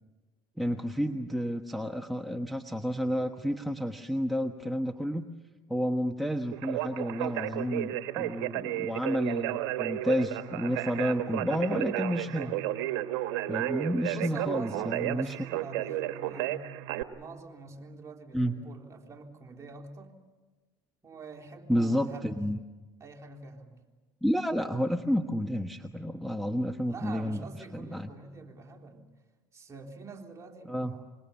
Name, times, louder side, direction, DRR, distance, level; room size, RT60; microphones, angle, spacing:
voice 1, 0.6-5.3 5.7-12.5 13.5-15.4 18.3-18.5 21.7-22.6 24.2-27.4 27.7-28.1 30.7-30.9, equal, ahead, 7 dB, 1.2 m, -30 dB
Conversation, 6.5-17.0, right 14 dB, 80° right, 1.3 m, -33 dB
voice 2, 12.3-12.7 14.1-16.7 17.1-20.2 21.0-22.4 23.0-23.8 26.9-29.1 29.5-31.0, right 4 dB, 25° right, 1 dB, 3.8 m, -45 dB
25.5 x 22.5 x 7.1 m, 1.3 s
supercardioid pair, 85°, 13 cm